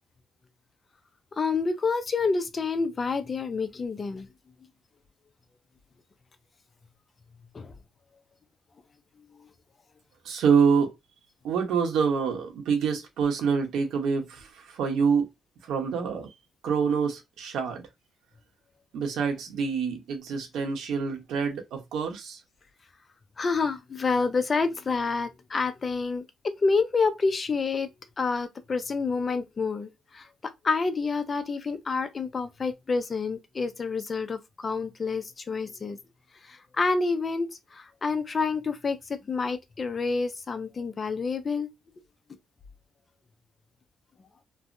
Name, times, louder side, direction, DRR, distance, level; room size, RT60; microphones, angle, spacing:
voice 1, 1.3-4.3 7.5-7.7 23.4-27.9 28.2-36.0 36.4-41.7, left 4 dB, 35° left, 0.5 m, -28 dB
voice 2, 10.2-10.9 11.4-15.3 15.6-16.3 16.6-17.9 18.9-22.4, right 6 dB, 80° right, 1.0 m, -26 dB
3.2 x 2.1 x 2.6 m
cardioid pair, 90°, 0 cm